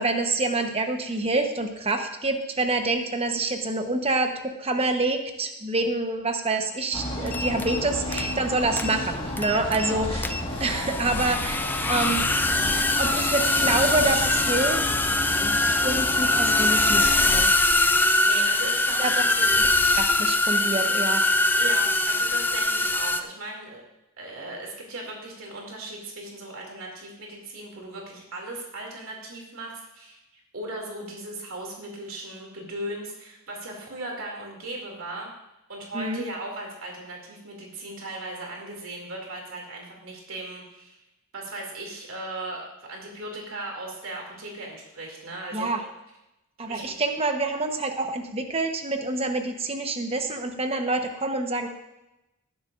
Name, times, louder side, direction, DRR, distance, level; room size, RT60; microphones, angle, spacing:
voice 1, 0.0-10.3 10.6-12.3 12.9-14.8 15.1-17.5 19.0-19.6 19.9-21.2 35.9-36.2 45.5-45.8 46.6-51.7, right 2 dB, 25° right, 5 dB, 1.0 m, -27 dB
sound 1, 6.9-17.4, left 1 dB, 25° left, 1.6 m, -32 dB
sound 2, 7.3-7.8 8.1-8.5 8.8-9.0 9.4-9.9 10.2-23.2, left 2 dB, 10° left, 0.3 m, -23 dB
voice 2, 9.7-10.1 18.2-19.7 21.6-23.8 24.2-35.3 35.7-41.0 41.3-45.8 46.7-46.8, right 2 dB, 70° right, 0 dB, 2.6 m, -37 dB
19.0 x 10.5 x 2.5 m, 0.94 s
head